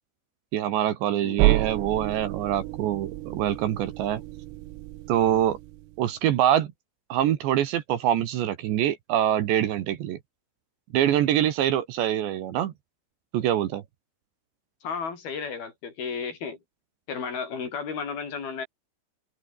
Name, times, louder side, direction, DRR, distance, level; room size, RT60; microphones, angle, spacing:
voice 1, 0.5-4.2 5.1-5.6 6.0-6.7 7.1-10.2 10.9-12.7 13.3-13.8, right 11 dB, 70° right, 3.5 m, -24 dB
sound 1, 1.4-6.1, right 18 dB, 90° right, 3.8 m, -29 dB
voice 2, 14.8-16.6 17.1-18.7, left 5 dB, 50° left, 5.8 m, -33 dB
omnidirectional pair, 5.8 m